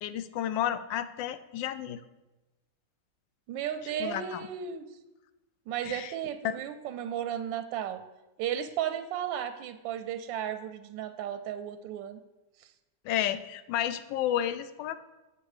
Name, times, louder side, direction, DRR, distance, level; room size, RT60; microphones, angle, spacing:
voice 1, 0.0-2.0 4.0-4.5 5.8-6.1 6.4-6.5 13.0-15.0, left 11 dB, 80° left, 12 dB, 1.2 m, -31 dB
voice 2, 3.5-4.8 5.7-8.0 8.4-12.2, right 10 dB, 90° right, 10 dB, 1.3 m, -34 dB
8.0 x 7.2 x 4.9 m, 1.0 s
omnidirectional pair, 2.0 m